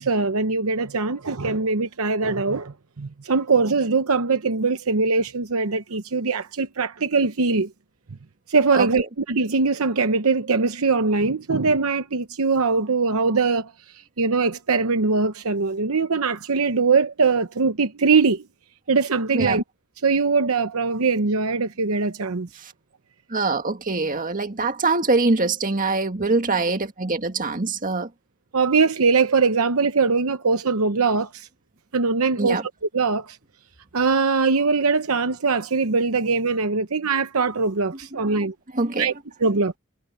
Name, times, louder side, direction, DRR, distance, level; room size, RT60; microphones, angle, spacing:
voice 1, 0.0-7.7 8.5-18.4 18.9-19.6 20.0-22.5 28.5-31.5 31.9-32.6 32.9-33.4 33.9-38.5 39.0-39.1 39.4-39.7, right 4 dB, 70° right, 0.9 m, -22 dB
voice 2, 23.3-28.1 32.4-32.6 38.1-38.4 38.7-39.1, right 3 dB, 40° right, 2.1 m, -23 dB
head